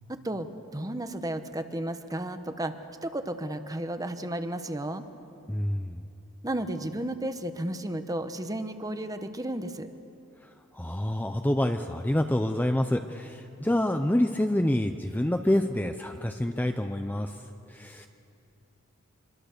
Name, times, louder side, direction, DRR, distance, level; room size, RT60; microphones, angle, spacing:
voice 1, 0.1-0.5 0.7-2.7 3.0-5.0 6.4-9.9, right 1 dB, 15° right, 9 dB, 1.0 m, -33 dB
voice 2, 5.5-6.0 10.7-17.3 17.7-18.1, left 1 dB, 10° left, 6 dB, 0.6 m, -27 dB
25.0 x 23.0 x 6.7 m, 2.7 s
head